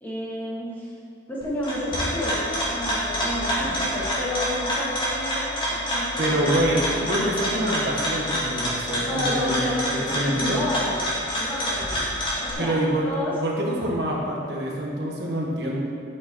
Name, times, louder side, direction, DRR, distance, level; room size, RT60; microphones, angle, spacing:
voice 1, 0.0-0.9 1.3-7.1 9.0-11.1 11.4-13.4, left 1 dB, 10° left, -7 dB, 2.0 m, -31 dB
sound 1, 1.4-12.5, equal, 25° left, 2.5 m, -27 dB
voice 2, 6.2-6.8 7.1-10.6 12.6-13.1 13.3-15.8, right 1 dB, 60° right, -2 dB, 1.5 m, -26 dB
11.5 x 6.5 x 4.6 m, 2.4 s
head